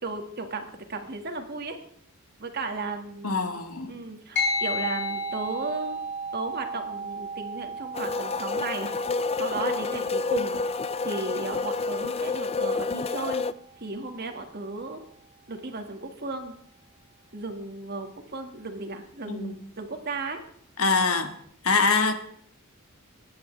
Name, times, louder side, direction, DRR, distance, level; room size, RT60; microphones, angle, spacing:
voice 1, 0.0-1.8 2.4-3.6 3.9-6.0 6.3-9.1 9.4-10.6 11.0-13.5 13.8-15.0 15.5-16.5 17.3-20.4, right 3 dB, 50° right, 2.0 m, -35 dB
voice 2, 3.2-4.0 19.3-19.5 20.8-21.3 21.6-22.1, left 4 dB, 75° left, 1.7 m, -24 dB
sound 1, 4.4-14.1, equal, 60° left, 5.3 m, -35 dB
sound 2, 7.9-13.5, left 4 dB, 30° left, 0.4 m, -29 dB
25.0 x 10.5 x 3.4 m
head